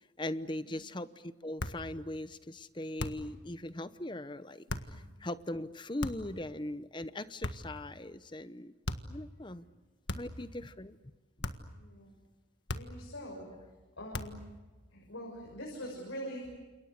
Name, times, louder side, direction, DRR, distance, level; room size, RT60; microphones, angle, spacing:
voice 1, 0.2-4.6 4.9-8.7 9.1-9.7 10.1-11.0 13.2-13.4, left 1 dB, 25° left, 14 dB, 0.8 m, -40 dB
sound 1, 1.6-1.9 3.0-3.4 4.7-5.0 6.0-6.4 7.4-7.8 8.8-9.2 10.1-10.5 11.4-11.8 12.7-13.1 14.1-14.5, left 2 dB, 60° left, 1.6 m, -38 dB
voice 2, 11.7-12.1 12.7-13.5 14.0-14.4 14.9-16.6, equal, 90° left, -1 dB, 6.5 m, -44 dB
29.5 x 28.0 x 6.6 m, 1.3 s
head